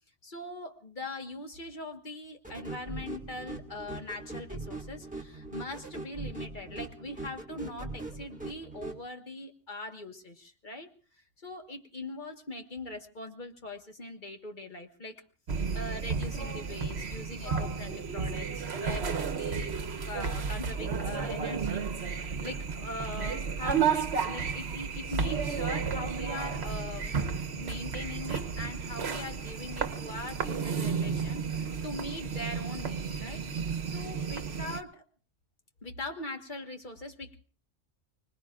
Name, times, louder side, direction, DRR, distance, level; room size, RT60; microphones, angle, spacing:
voice 1, 0.2-10.9 11.4-15.2 15.7-19.7 20.0-27.2 27.6-33.5 33.9-35.0 35.8-37.4, left 2 dB, 40° left, 4 dB, 1.6 m, -41 dB
sound 1, 2.4-9.0, right 2 dB, 5° right, 1.8 m, -41 dB
sound 2, 15.5-34.8, right 6 dB, 65° right, 1.2 m, -32 dB
30.0 x 19.5 x 2.5 m, 0.37 s
omnidirectional pair, 1.2 m